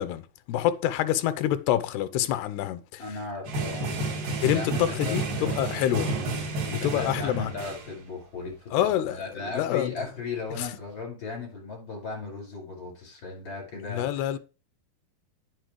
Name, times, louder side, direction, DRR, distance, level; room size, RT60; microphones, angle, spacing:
voice 1, 0.0-3.0 4.4-6.2 6.7-7.5 8.7-10.1 10.6-10.7 13.7-14.4, left 12 dB, 85° left, 2.7 m, -27 dB
voice 2, 3.0-4.0 4.3-5.5 6.7-14.4, left 4 dB, 30° left, 5.6 m, -37 dB
sound 1, 3.4-7.9, right 2 dB, 60° right, 4.5 m, -31 dB
9.4 x 7.8 x 3.1 m
omnidirectional pair, 4.6 m